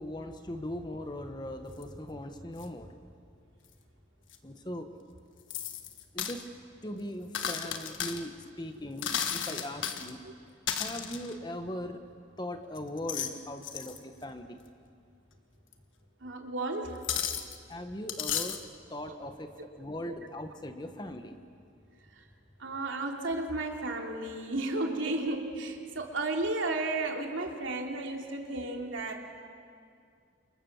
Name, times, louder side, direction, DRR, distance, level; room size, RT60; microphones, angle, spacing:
voice 1, 0.0-2.9 4.4-4.9 6.1-6.4 6.8-10.2 10.7-12.0 12.4-14.6 17.7-18.6 18.9-21.4, left 1 dB, 20° left, 7 dB, 1.4 m, -39 dB
sound 1, 1.8-1.9 2.6-2.7 4.3-4.4 5.5-6.4 7.3-8.2 9.0-10.1 10.7-11.3 12.8-13.3 13.6-14.0 15.7-15.8 17.0-17.6 18.1-18.6, left 8 dB, 85° left, 1.5 m, -34 dB
voice 2, 16.2-17.0 19.1-19.5 20.0-20.2 22.2-22.3 22.6-29.4, right 2 dB, 80° right, 2 dB, 3.0 m, -33 dB
29.5 x 27.0 x 7.4 m, 2.3 s
head